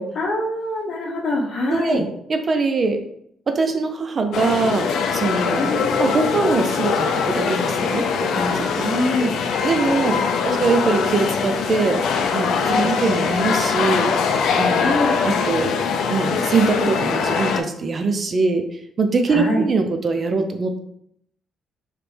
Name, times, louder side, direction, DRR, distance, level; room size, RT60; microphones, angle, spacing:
voice 1, 0.1-2.0 5.6-5.9 8.7-9.3 10.0-10.5 12.7-12.9 14.8-15.1 19.3-19.6, left 1 dB, 55° left, -1 dB, 1.0 m, -24 dB
voice 2, 1.7-2.0 2.3-3.0 3.5-4.9 5.1-8.9 9.6-12.0 12.3-15.7 16.1-18.6 19.0-20.8, right 3 dB, 40° right, 6 dB, 0.5 m, -22 dB
sound 1, 4.3-17.6, left 6 dB, 80° left, 0.3 m, -22 dB
3.2 x 3.0 x 3.2 m, 0.71 s
cardioid pair, 90°, 0 cm